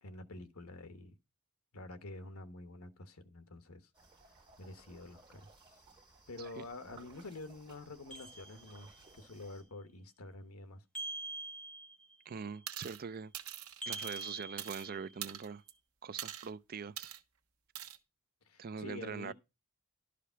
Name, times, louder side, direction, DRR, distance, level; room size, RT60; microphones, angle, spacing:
voice 1, 0.0-1.1 1.7-3.9 4.6-5.5 5.7-5.8 6.3-10.8 18.4-19.3, left 2 dB, 85° left, 1.2 m, -48 dB
sound 1, 3.9-9.6, right 3 dB, 25° right, 3.8 m, -60 dB
sound 2, 8.1-9.1 10.9-12.2 13.8-15.3, right 2 dB, 5° left, 1.3 m, -45 dB
voice 2, 12.3-13.3 13.9-15.6 16.0-17.2 18.6-19.3, right 6 dB, 45° right, 0.4 m, -43 dB
sound 3, 12.7-13.0 13.3-14.9 15.2-15.7 16.2-16.5 17.0-17.2 17.7-18.0, right 11 dB, 75° right, 1.1 m, -43 dB
12.0 x 5.0 x 5.7 m
head